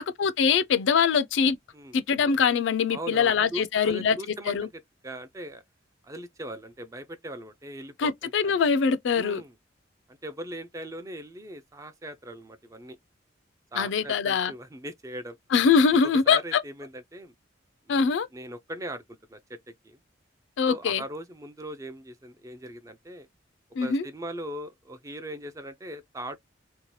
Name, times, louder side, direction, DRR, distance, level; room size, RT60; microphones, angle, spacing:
voice 1, 0.0-1.6 1.9-4.2 4.5-4.7 8.0-9.4 13.8-14.5 15.5-16.6 17.9-18.3 20.6-21.0 23.8-24.0, left 6 dB, 75° left, 0.4 m, -23 dB
voice 2, 2.9-5.6 6.0-8.6 9.1-9.6 10.1-13.0 13.7-15.4 16.0-17.3 17.9-19.6 19.8-20.0 20.7-23.3 23.8-26.4, right 1 dB, 15° right, 0.4 m, -40 dB
2.7 x 2.2 x 3.0 m
head